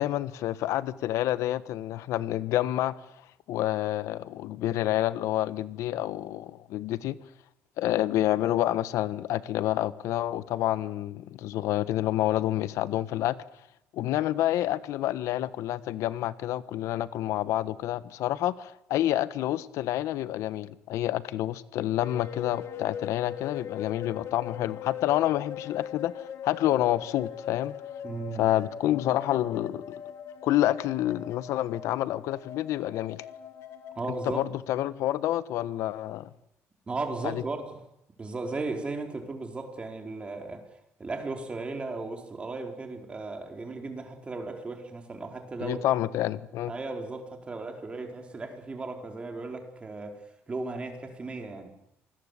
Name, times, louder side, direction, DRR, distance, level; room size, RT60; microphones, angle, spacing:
voice 1, 0.0-2.9 3.5-7.2 7.8-13.4 13.9-27.7 28.4-30.0 30.4-33.2 34.3-36.3 37.2-37.4 45.6-46.7, left 13 dB, 80° left, 1.3 m, -28 dB
sound 1, 22.0-34.2, left 8 dB, 65° left, 3.3 m, -41 dB
voice 2, 28.0-28.4 34.0-34.4 36.9-37.8 38.2-40.7 41.0-45.8 46.7-50.2 50.5-51.7, right 3 dB, 20° right, 4.3 m, -36 dB
27.0 x 20.0 x 8.3 m
cardioid pair, 145°, 5 cm